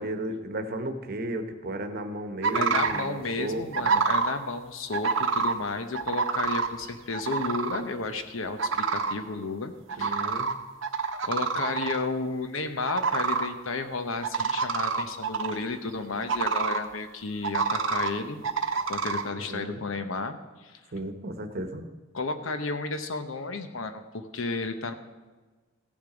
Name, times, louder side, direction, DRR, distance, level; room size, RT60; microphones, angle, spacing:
voice 1, 0.0-3.9 10.0-10.5 19.4-19.8 20.9-21.8, right 1 dB, 50° right, 7 dB, 1.0 m, -34 dB
sound 1, 2.4-3.1 3.7-4.3 4.9-5.5 5.9-6.7 7.1-7.8 8.6-9.1 9.9-10.5 10.8-12.0 12.9-13.5 14.2-15.6 16.3-16.8 17.4-18.1 18.4-19.2, right 5 dB, 70° right, 0.9 m, -27 dB
voice 2, 2.5-9.7 10.0-10.4 11.2-18.4 18.9-20.8 22.1-24.9, left 3 dB, 80° left, 9 dB, 0.9 m, -32 dB
15.5 x 7.3 x 5.0 m, 1.3 s
head